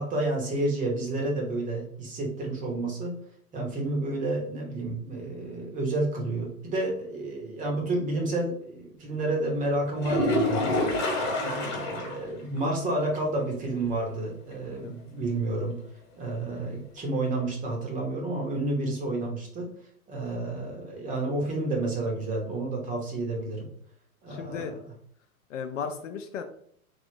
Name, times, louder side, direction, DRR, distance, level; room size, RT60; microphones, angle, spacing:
voice 1, 0.0-3.2 3.5-10.8 11.4-15.8 16.2-19.7 20.1-23.7 24.2-24.6, right 2 dB, 20° right, 0 dB, 0.7 m, -30 dB
sound 1, 10.0-12.2 12.6-12.7 13.1-13.2 17.0-17.1, left 1 dB, 35° left, 1.3 m, -27 dB
voice 2, 24.3-24.7 25.5-26.4, left 6 dB, 60° left, 7 dB, 0.5 m, -36 dB
3.2 x 2.6 x 2.6 m, 0.64 s
figure-of-eight pair, 105°, 45 cm